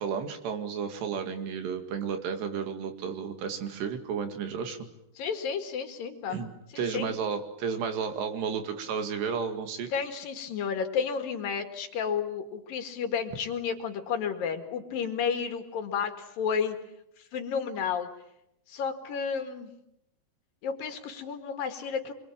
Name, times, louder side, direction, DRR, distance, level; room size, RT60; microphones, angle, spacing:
voice 1, 0.0-4.8 6.3-6.5 6.8-9.9, right 6 dB, 85° right, 7 dB, 4.4 m, -32 dB
voice 2, 5.2-6.4 6.7-7.1 9.9-16.8 17.2-18.1 18.7-19.7 20.6-22.1, left 6 dB, 60° left, 6 dB, 3.3 m, -32 dB
26.0 x 23.0 x 8.6 m, 0.83 s
omnidirectional pair, 4.8 m